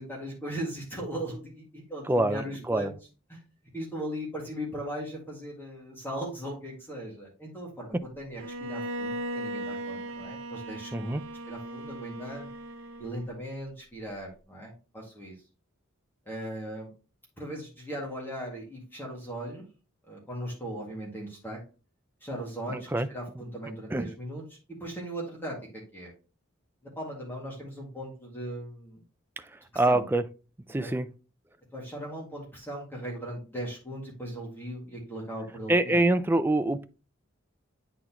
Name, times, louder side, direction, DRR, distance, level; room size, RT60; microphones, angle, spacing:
voice 1, 0.0-2.9 3.3-3.4 3.7-11.2 11.5-12.5 13.0-15.4 16.3-16.9 17.4-19.7 20.1-21.6 22.2-24.4 24.8-26.1 27.0-29.0 29.9-30.0 30.8-30.9 31.7-36.0, right 1 dB, 10° left, 1.9 m, -38 dB
voice 2, 2.1-2.9 7.9-8.0 10.9-11.2 22.7-23.1 23.9-24.1 29.8-30.2 30.7-31.1 35.7-36.8, right 2 dB, 10° right, 0.3 m, -25 dB
Bowed string instrument, 8.4-13.4, right 1 dB, 85° right, 0.8 m, -37 dB
9.1 x 4.1 x 2.9 m
head